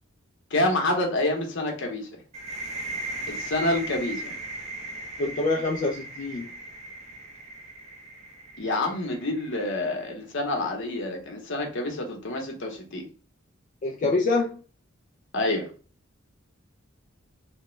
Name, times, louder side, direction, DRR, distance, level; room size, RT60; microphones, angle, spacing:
voice 1, 0.5-2.1 3.3-4.3 8.6-13.0 15.3-15.6, left 2 dB, 60° left, 0.8 m, -27 dB
sound 1, 2.3-9.9, right 2 dB, 35° right, 0.8 m, -38 dB
voice 2, 5.2-6.5 13.8-14.5, left 2 dB, 40° left, 0.3 m, -25 dB
3.0 x 2.2 x 3.0 m
head